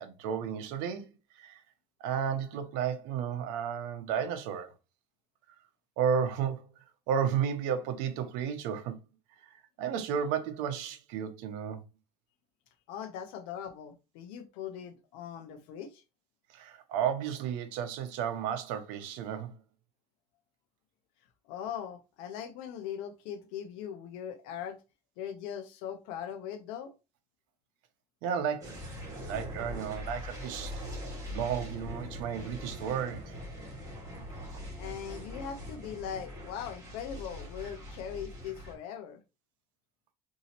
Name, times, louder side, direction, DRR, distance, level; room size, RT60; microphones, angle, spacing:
voice 1, 0.0-1.6 2.0-4.7 6.0-6.7 7.1-9.0 9.8-11.8 16.5-19.5 28.2-30.8 31.3-33.3, right 8 dB, 90° right, 0.7 m, -33 dB
voice 2, 12.9-16.0 21.5-24.8 25.2-26.9 34.8-39.2, left 8 dB, 90° left, 0.6 m, -40 dB
sound 1, 28.6-38.7, left 1 dB, 25° right, 1.7 m, -42 dB
4.0 x 2.7 x 2.8 m
cardioid pair, 130°, 14 cm